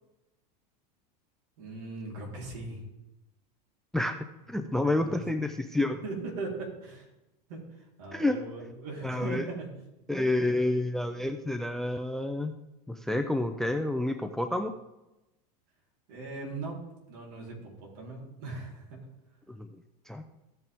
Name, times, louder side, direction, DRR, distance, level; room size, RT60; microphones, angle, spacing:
voice 1, 1.6-2.8 4.8-5.3 6.0-7.1 7.5-7.6 8.0-9.7 10.5-10.7 16.1-16.8 17.1-19.0, right 3 dB, 70° right, -2 dB, 4.0 m, -39 dB
voice 2, 3.9-6.0 8.1-8.4 9.0-9.5 10.1-12.5 12.9-14.7 19.5-19.7 20.1-20.2, left 2 dB, ahead, 9 dB, 0.5 m, -29 dB
15.5 x 5.7 x 3.6 m, 0.95 s
supercardioid pair, 115°, 21 cm